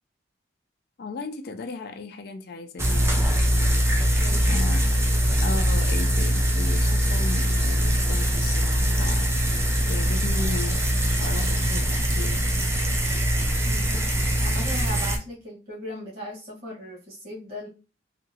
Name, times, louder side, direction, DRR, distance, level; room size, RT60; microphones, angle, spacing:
voice 1, 1.0-3.9 4.5-4.9 5.4-9.3 9.9-12.6, left 4 dB, 55° left, 0.4 m, -36 dB
sound 1, 2.8-15.2, equal, 15° right, 0.4 m, -22 dB
voice 2, 4.2-4.6 13.7-14.1 14.4-17.7, equal, 50° right, 1.3 m, -37 dB
2.8 x 2.5 x 2.7 m
head